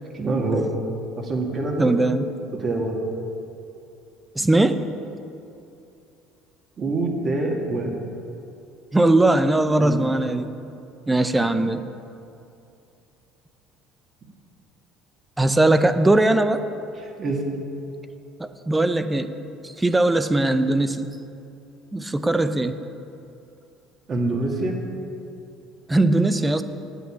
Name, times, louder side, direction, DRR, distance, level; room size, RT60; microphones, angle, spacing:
voice 1, 0.1-0.7 1.2-2.0 2.5-3.0 6.8-7.9 9.8-10.1 17.2-17.4 24.1-24.8, right 2 dB, 35° right, 1 dB, 2.1 m, -25 dB
voice 2, 1.8-2.3 4.4-4.9 8.9-10.5 11.1-11.9 15.4-16.6 18.4-19.3 19.8-21.1 21.9-22.8 25.9-26.6, right 2 dB, 10° right, 10 dB, 0.6 m, -20 dB
9.2 x 8.3 x 8.7 m, 2.7 s
cardioid pair, 110°, 0 cm